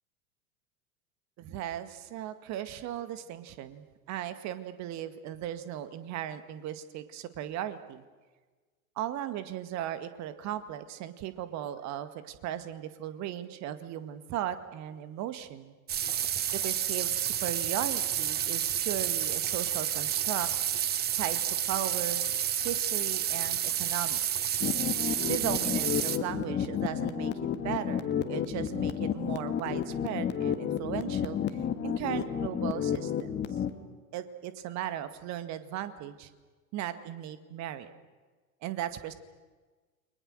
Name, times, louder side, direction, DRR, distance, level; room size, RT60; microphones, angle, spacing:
voice 1, 1.4-8.0 9.0-15.7 16.5-20.5 21.1-22.2 22.6-24.5 25.3-27.3 27.6-33.3 34.1-36.3 36.7-37.9 38.6-39.1, right 11 dB, 40° right, 11 dB, 1.9 m, -37 dB
sound 1, 15.9-26.2, right 10 dB, 20° right, 1.0 m, -30 dB
sound 2, 24.6-33.7, left 8 dB, 25° left, 1.8 m, -31 dB
30.0 x 23.5 x 6.5 m, 1.3 s
figure-of-eight pair, 85°, 43 cm